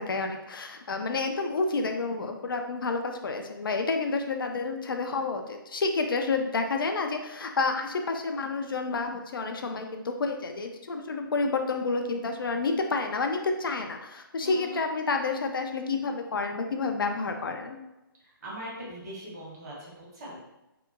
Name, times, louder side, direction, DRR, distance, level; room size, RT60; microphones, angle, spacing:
voice 1, 0.0-17.8, left 3 dB, 70° left, 4 dB, 0.4 m, -29 dB
voice 2, 14.4-14.8 18.4-20.4, right 1 dB, 45° right, -4 dB, 1.1 m, -40 dB
2.7 x 2.1 x 2.4 m, 0.96 s
figure-of-eight pair, 140°, 12 cm